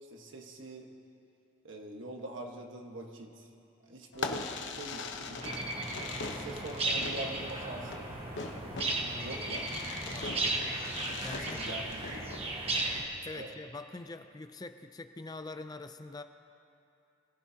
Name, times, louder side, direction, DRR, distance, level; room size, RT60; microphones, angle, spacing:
voice 1, 0.1-0.9 1.6-3.5 3.9-5.5 6.2-8.1 9.2-9.7 10.0-10.2 11.1-12.3 13.3-13.5, right 2 dB, 65° right, 2 dB, 1.5 m, -44 dB
Fireworks, 4.1-12.5, left 3 dB, 60° left, 0.9 m, -41 dB
sound 1, 5.4-13.0, right 2 dB, 30° right, 1.4 m, -35 dB
voice 2, 9.1-9.5 10.1-10.5 11.2-11.7 13.2-16.2, left 2 dB, 20° left, 9 dB, 0.4 m, -44 dB
25.5 x 15.0 x 2.9 m, 2.7 s
head